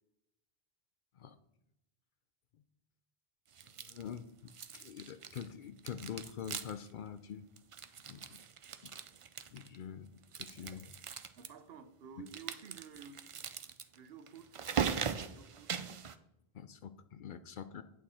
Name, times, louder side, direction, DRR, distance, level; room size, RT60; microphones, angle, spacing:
sound 1, 3.5-4.2 4.5-5.5 5.8-6.9 7.2-7.3 7.6-9.8 10.2-11.5 12.3-16.2, right 7 dB, 50° right, 0.4 m, -40 dB
voice 1, 3.6-7.4 8.1-8.4 8.8-8.9 9.5-10.1 10.3-10.9 16.5-17.8, left 8 dB, 60° left, 11 dB, 0.6 m, -45 dB
voice 2, 11.4-13.2 14.0-14.5 15.2-15.7, right 7 dB, 70° right, 11 dB, 0.9 m, -52 dB
8.6 x 7.2 x 4.3 m, 0.87 s
omnidirectional pair, 1.0 m